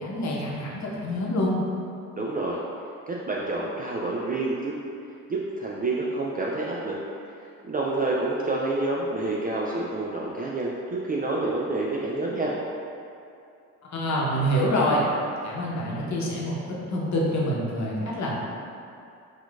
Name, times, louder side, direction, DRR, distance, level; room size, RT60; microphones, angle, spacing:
voice 1, 0.0-1.6 13.9-15.1 15.4-16.6 16.9-18.4, equal, 45° left, -4 dB, 0.9 m, -26 dB
voice 2, 2.2-2.6 3.1-4.7 5.3-7.0 7.6-12.5, right 2 dB, 25° right, -4 dB, 0.3 m, -28 dB
4.2 x 2.5 x 2.4 m, 2.5 s
hypercardioid pair, 55°, 40 cm